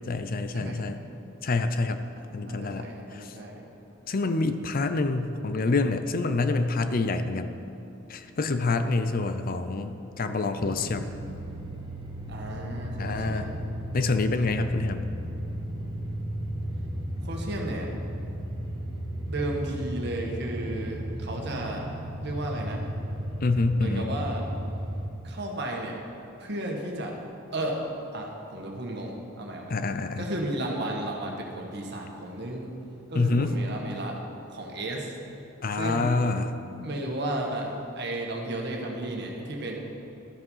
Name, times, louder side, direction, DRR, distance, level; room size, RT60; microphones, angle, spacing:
voice 1, 0.1-1.0 1.4-2.0 2.3-2.9 3.1-3.3 4.1-7.5 8.1-11.1 13.0-13.5 13.9-15.0 23.4-24.1 29.7-30.3 33.2-33.5 35.6-36.5, left 3 dB, 45° left, 9 dB, 0.5 m, -27 dB
voice 2, 2.1-3.6 12.3-13.6 17.2-17.9 19.3-22.9 23.8-24.6 25.2-26.0 26.4-27.2 27.5-29.7 30.2-32.7 33.1-34.2 34.5-35.2 35.7-36.2 36.8-39.7, right 1 dB, 55° right, 0 dB, 1.8 m, -33 dB
sound 1, 10.6-25.1, equal, 25° right, 0.9 m, -35 dB
13.0 x 8.0 x 5.6 m, 2.9 s
head